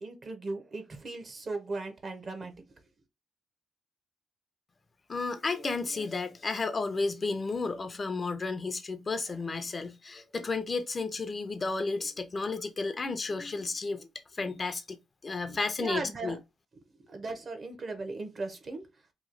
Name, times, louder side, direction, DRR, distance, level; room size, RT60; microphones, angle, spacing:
voice 1, 0.0-2.5 15.5-16.4 17.0-18.8, right 3 dB, 45° right, 0.9 m, -37 dB
voice 2, 5.1-14.1 14.3-15.0 15.2-16.4, left 3 dB, 35° left, 0.6 m, -32 dB
3.0 x 2.3 x 3.8 m
cardioid pair, 85°, 0 cm